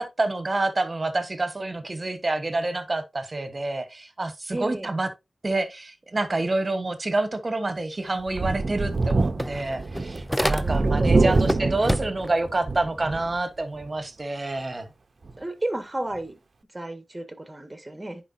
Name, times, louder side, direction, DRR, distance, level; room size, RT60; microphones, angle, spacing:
voice 1, 0.0-5.1 5.4-14.9, right 2 dB, 40° right, 1.3 m, -28 dB
voice 2, 4.5-4.9 10.6-11.3 15.4-16.4 16.7-18.2, right 1 dB, 20° right, 1.7 m, -31 dB
Thunder, 8.3-13.4 13.8-13.9 15.3-15.4, right 3 dB, 60° right, 0.8 m, -25 dB
sound 1, 8.4-8.5 8.8-11.0 11.3-12.4, equal, 5° left, 0.3 m, -29 dB
10.0 x 4.7 x 2.8 m
cardioid pair, 50°, 0 cm